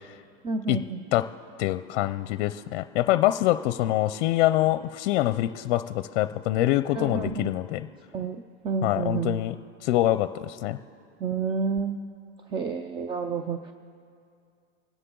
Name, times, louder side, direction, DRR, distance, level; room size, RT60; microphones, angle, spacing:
voice 1, 0.4-1.0 7.0-7.5 8.1-8.4 8.6-9.4 11.2-12.0 12.5-13.7, right 5 dB, 15° right, 8 dB, 0.3 m, -29 dB
voice 2, 1.6-7.9 8.8-9.5 9.8-10.8, left 15 dB, 60° left, 12 dB, 0.6 m, -25 dB
25.5 x 9.7 x 3.8 m, 2.4 s
supercardioid pair, 130°, 35 cm